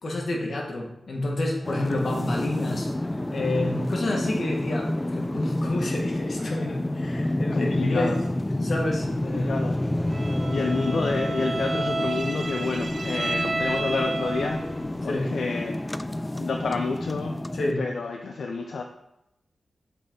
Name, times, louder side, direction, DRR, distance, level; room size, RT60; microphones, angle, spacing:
voice 1, 0.0-2.9 3.3-8.1 8.6-9.6 15.0-15.3 17.5-17.8, left 2 dB, 60° left, 0 dB, 1.4 m, -29 dB
sound 1, 1.6-17.7, left 1 dB, 15° left, 0.3 m, -29 dB
voice 2, 7.2-8.3 9.2-9.8 10.2-15.8 16.3-17.3 17.8-18.8, left 4 dB, 80° left, 3 dB, 0.4 m, -30 dB
sound 2, 8.7-15.1, right 1 dB, 75° right, 1.6 m, -46 dB
Bowed string instrument, 10.1-14.8, right 2 dB, 45° right, 0.7 m, -31 dB
7.6 x 4.2 x 3.7 m, 0.86 s
wide cardioid pair, 85°, 0 cm